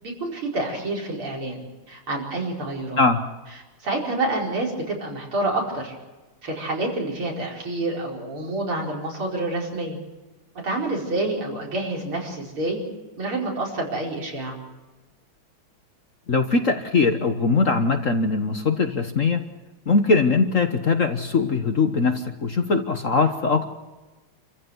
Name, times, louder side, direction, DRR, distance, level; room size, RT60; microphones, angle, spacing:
voice 1, 0.0-1.6 1.9-3.0 3.8-6.0 6.4-10.0 10.6-12.8 13.2-14.6, right 2 dB, 80° right, -1 dB, 5.7 m, -28 dB
voice 2, 16.3-19.4 19.9-23.6, left 4 dB, 45° left, 7 dB, 1.4 m, -21 dB
28.5 x 15.0 x 8.0 m, 1.2 s
omnidirectional pair, 2.3 m